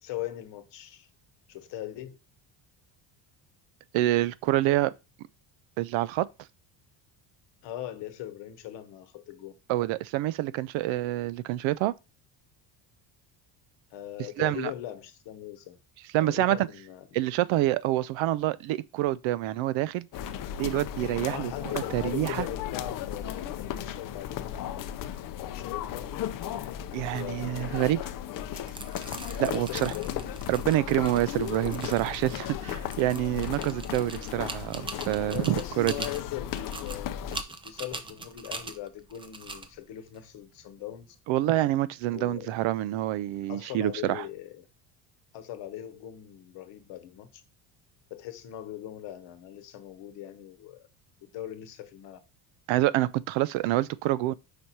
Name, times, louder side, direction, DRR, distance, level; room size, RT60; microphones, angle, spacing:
voice 1, 0.0-1.1 1.5-2.2 7.6-9.5 13.9-15.8 16.2-17.2 21.2-24.7 25.3-26.1 27.2-28.0 29.5-30.6 35.3-41.2 42.1-42.6 43.5-44.7 45.3-47.4 48.1-50.8 51.3-52.2, left 12 dB, 65° left, 1.0 m, -40 dB
voice 2, 3.9-4.9 5.8-6.3 9.7-11.9 14.4-14.7 16.1-16.7 17.1-20.1 20.6-22.5 26.9-28.0 29.4-29.9 30.5-35.9 41.3-44.2 52.7-54.3, right 15 dB, 75° right, 0.5 m, -27 dB
sound 1, 20.1-37.4, left 10 dB, 45° left, 0.5 m, -36 dB
sound 2, 28.4-41.1, right 3 dB, 15° right, 0.3 m, -43 dB
5.1 x 4.2 x 4.4 m
cardioid pair, 155°, 47 cm